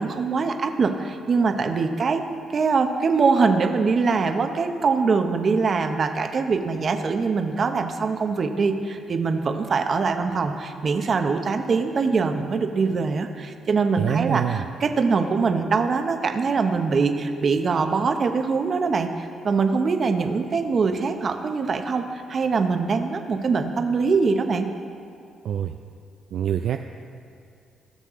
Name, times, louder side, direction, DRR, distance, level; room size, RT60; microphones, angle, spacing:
voice 1, 0.0-2.2 2.5-24.7, right 4 dB, 45° right, 6 dB, 0.8 m, -23 dB
voice 2, 14.0-14.6 25.4-25.8 26.3-26.8, right 9 dB, 65° right, 6 dB, 0.3 m, -25 dB
17.5 x 6.7 x 3.7 m, 2.4 s
cardioid pair, 90°, 0 cm